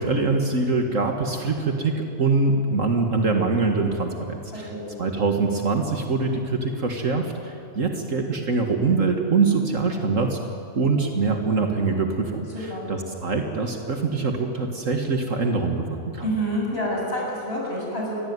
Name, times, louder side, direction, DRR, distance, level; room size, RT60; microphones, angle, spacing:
voice 1, 0.0-4.7 5.0-10.4 10.8-16.2, right 4 dB, 65° right, 3 dB, 2.2 m, -24 dB
voice 2, 4.5-5.0 12.5-12.9 16.2-18.2, equal, 45° left, -3 dB, 8.0 m, -28 dB
27.5 x 22.0 x 9.7 m, 2.7 s
omnidirectional pair, 1.4 m